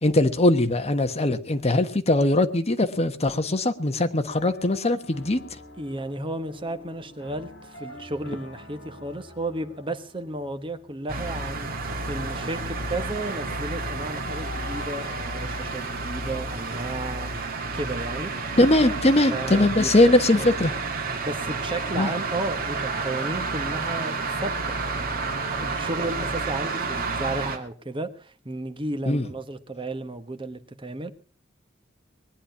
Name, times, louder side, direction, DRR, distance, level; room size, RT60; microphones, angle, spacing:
voice 1, 0.0-5.4 18.6-20.7 22.0-22.1 29.1-29.3, left 1 dB, 30° left, 8 dB, 1.3 m, -21 dB
sound 1, 4.2-23.1, left 1 dB, 55° left, 4.6 m, -46 dB
voice 2, 5.8-11.7 12.1-17.3 17.7-18.3 19.3-20.7 21.2-25.3 25.6-31.1, right 2 dB, 25° right, 9 dB, 1.3 m, -33 dB
sound 2, 11.1-27.6, right 3 dB, 50° right, 2.3 m, -30 dB
20.5 x 10.0 x 5.7 m, 0.41 s
head